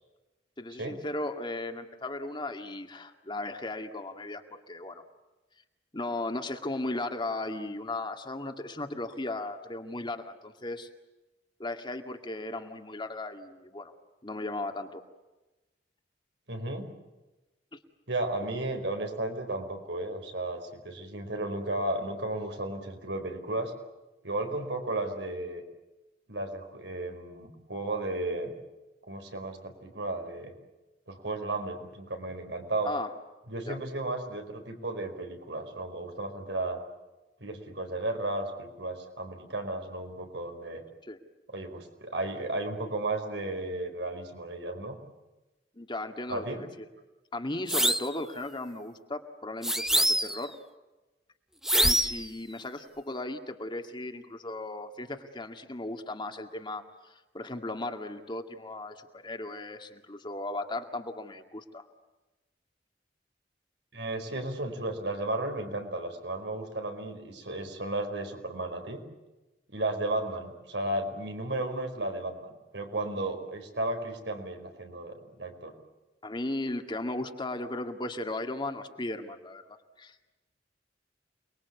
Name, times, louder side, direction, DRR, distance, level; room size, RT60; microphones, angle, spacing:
voice 1, 0.6-5.0 5.9-10.9 11.6-13.9 14.2-15.0 17.7-17.8 32.8-33.1 33.7-33.8 41.0-41.2 45.8-46.7 47.3-50.5 51.8-61.9 76.2-80.3, left 2 dB, 25° left, 5 dB, 2.1 m, -36 dB
voice 2, 16.5-16.9 18.1-23.7 24.2-25.6 26.3-28.5 29.0-30.5 31.1-32.9 33.5-36.8 37.4-40.8 41.5-45.0 46.3-46.6 63.9-69.0 69.7-75.7, right 2 dB, 80° right, 5 dB, 4.9 m, -34 dB
sound 1, 47.7-48.1 49.6-50.5 51.6-52.3, right 1 dB, 5° right, 0.8 m, -25 dB
29.0 x 21.5 x 8.3 m, 1.1 s
head